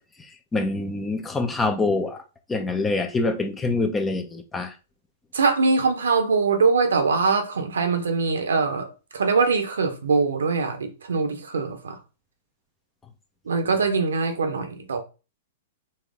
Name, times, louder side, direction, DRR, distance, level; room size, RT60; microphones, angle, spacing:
voice 1, 0.5-2.2 2.5-4.7, left 3 dB, 10° left, 0.7 m, -25 dB
voice 2, 5.3-8.9 9.1-12.0 13.5-15.0, right 4 dB, 65° right, 0.9 m, -22 dB
4.3 x 2.9 x 3.6 m
figure-of-eight pair, 105°, 0 cm